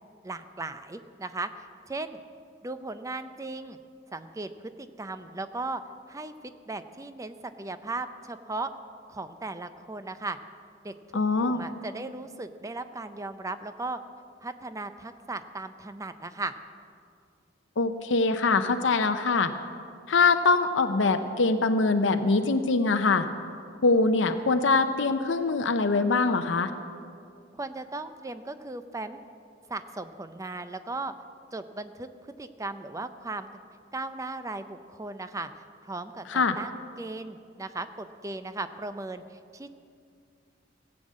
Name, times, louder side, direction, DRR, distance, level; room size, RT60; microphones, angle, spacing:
voice 1, 0.2-1.5 1.9-2.2 2.6-3.8 4.1-4.5 4.8-5.8 6.1-8.7 9.1-10.4 10.8-14.0 14.4-16.5 27.5-29.2 29.7-31.1 31.5-33.5 33.9-39.7, right 2 dB, 15° right, 10 dB, 0.5 m, -37 dB
voice 2, 11.1-11.6 17.8-19.5 20.1-23.3 23.8-26.7 36.3-36.6, left 3 dB, 80° left, 8 dB, 0.6 m, -23 dB
16.0 x 8.0 x 7.4 m, 2.4 s
head